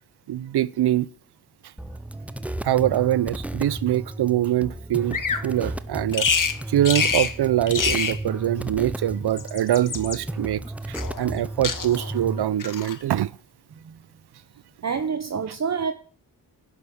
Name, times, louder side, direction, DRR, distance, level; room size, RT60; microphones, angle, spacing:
voice 1, 0.3-1.1 2.6-6.3 6.7-13.3, right 13 dB, 85° right, 0.6 m, -24 dB
sound 1, 1.8-12.4, right 1 dB, 5° right, 0.6 m, -34 dB
Bird vocalization bird call bird song, 5.1-5.5 6.1-6.6 6.9-7.3 7.7-8.2 9.2-10.2 11.0-11.4 11.6-12.1 12.6-13.0, left 6 dB, 55° left, 1.3 m, -26 dB
voice 2, 13.7-14.0 14.8-15.9, right 6 dB, 45° right, 0.9 m, -28 dB
11.5 x 6.0 x 6.9 m
cardioid pair, 75°, 39 cm